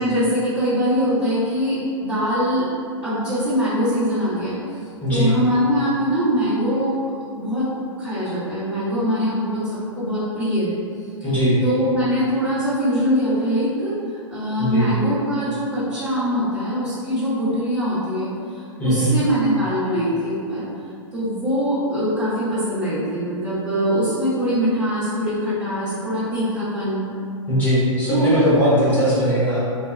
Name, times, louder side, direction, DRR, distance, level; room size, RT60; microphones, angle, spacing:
voice 1, 0.0-2.7 3.0-4.6 5.1-6.9 7.3-7.7 8.0-10.8 11.2-11.3 11.6-18.3 18.5-20.7 21.1-27.1 28.1-28.3, equal, 20° right, -18 dB, 1.4 m, -22 dB
voice 2, 11.2-11.6 14.6-14.9 18.8-19.1 27.5-29.6, equal, 10° left, -10 dB, 1.1 m, -19 dB
2.6 x 2.3 x 2.4 m, 2.4 s
hypercardioid pair, 115°, 17 cm